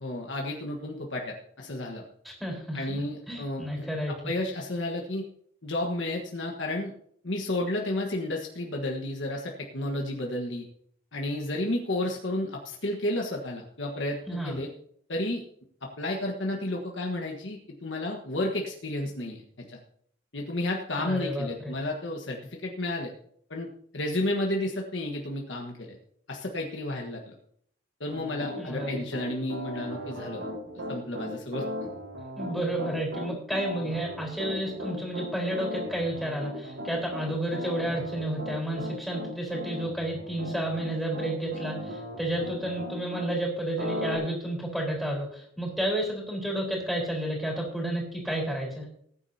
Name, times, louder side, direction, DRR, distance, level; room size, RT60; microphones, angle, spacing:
voice 1, 0.0-2.0 2.7-5.2 5.6-6.9 7.2-10.6 11.1-14.7 15.1-15.4 15.8-19.8 20.3-23.1 23.5-26.0 26.3-27.4 28.0-30.4 30.9-31.6, left 1 dB, 70° left, 0 dB, 1.5 m, -32 dB
voice 2, 2.2-4.3 14.3-14.5 20.9-21.7 28.6-29.0 32.3-48.9, right 1 dB, ahead, -1 dB, 4.3 m, -31 dB
Piano, 28.1-43.3 43.8-44.2, equal, 90° right, 4.5 m, -37 dB
19.5 x 9.8 x 2.8 m, 0.64 s
head